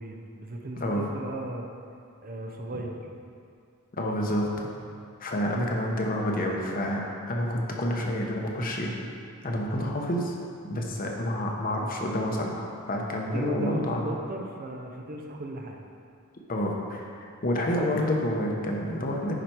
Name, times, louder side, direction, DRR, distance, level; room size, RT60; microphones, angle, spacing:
voice 1, 0.0-1.7 2.2-3.0 4.9-5.0 12.9-15.8, right 1 dB, 40° right, 2 dB, 0.7 m, -36 dB
voice 2, 4.0-4.5 5.2-8.9 9.4-10.3 10.7-14.1 16.5-19.3, equal, 40° left, 0 dB, 1.0 m, -29 dB
10.0 x 5.0 x 4.5 m, 2.4 s
head